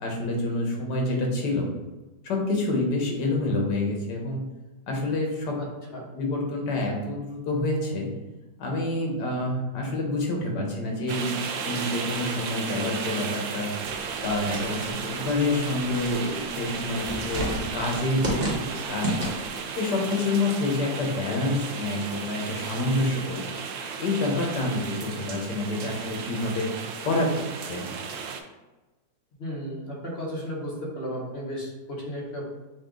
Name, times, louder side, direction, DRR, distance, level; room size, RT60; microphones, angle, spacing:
voice 1, 0.0-1.7 2.2-4.5 4.9-5.6 6.1-8.1 8.6-11.3 11.6-13.7 14.2-18.4 18.8-19.1 19.8-23.6 24.0-26.7 27.0-27.3 27.6-27.9, left 2 dB, 75° left, 0 dB, 1.6 m, -27 dB
sound 1, 11.1-28.4, right 6 dB, 75° right, 0.7 m, -34 dB
sound 2, 13.8-19.7, equal, 35° right, 1.1 m, -33 dB
voice 2, 18.4-18.8 29.4-32.5, equal, 40° left, -3 dB, 1.2 m, -34 dB
5.9 x 2.4 x 3.7 m, 1.1 s
omnidirectional pair, 1.9 m